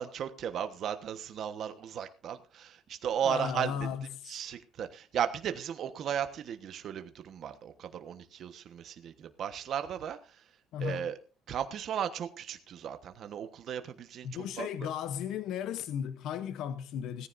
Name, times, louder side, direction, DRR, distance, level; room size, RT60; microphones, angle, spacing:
voice 1, 0.0-3.7 4.3-10.2 10.8-11.2 11.5-14.7, right 9 dB, 45° right, 1.2 m, -35 dB
voice 2, 3.2-4.2 10.7-11.1 14.2-17.3, left 8 dB, 60° left, 0.8 m, -35 dB
18.0 x 14.5 x 2.6 m
cardioid pair, 170°, 0 cm